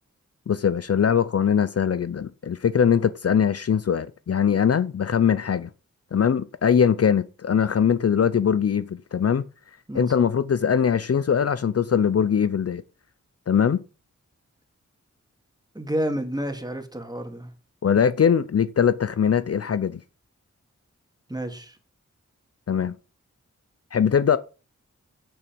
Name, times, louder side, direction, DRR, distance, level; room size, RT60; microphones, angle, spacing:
voice 1, 0.5-5.7 6.1-9.4 9.9-12.8 13.5-13.8 17.8-20.0 22.7-23.0 23.9-24.4, left 7 dB, 55° left, 0.5 m, -21 dB
voice 2, 15.7-17.5 21.3-21.8, equal, 15° right, 2.1 m, -30 dB
8.9 x 6.8 x 5.2 m
wide cardioid pair, 60°, 30 cm